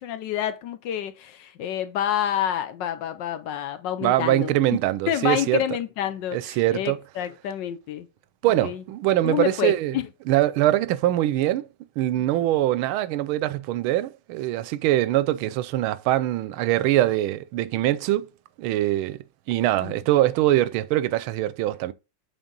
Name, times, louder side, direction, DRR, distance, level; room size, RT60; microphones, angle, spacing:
voice 1, 0.0-4.5 5.1-8.1 8.6-8.8 9.2-10.0 12.2-12.3 19.8-20.0, left 10 dB, 70° left, 1.2 m, -28 dB
voice 2, 4.0-5.6 6.3-7.0 8.4-10.0 10.3-11.7 12.0-18.3 18.6-21.9, right 14 dB, 90° right, 1.4 m, -23 dB
8.1 x 4.0 x 3.8 m
omnidirectional pair, 2.2 m